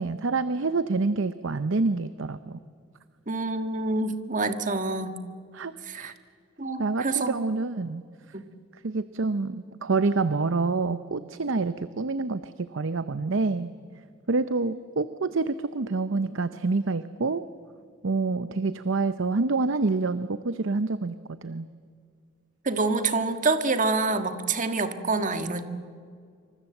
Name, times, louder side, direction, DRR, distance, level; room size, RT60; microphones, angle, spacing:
voice 1, 0.0-2.6 5.5-6.1 6.8-8.0 8.8-13.7 14.3-17.4 18.0-21.2 21.4-21.7, right 3 dB, 65° right, 13 dB, 0.7 m, -27 dB
voice 2, 3.3-5.2 5.8-6.1 6.6-7.4 8.3-8.5 22.6-25.6, right 3 dB, 40° right, 8 dB, 1.6 m, -27 dB
27.0 x 25.5 x 7.9 m, 2.2 s
head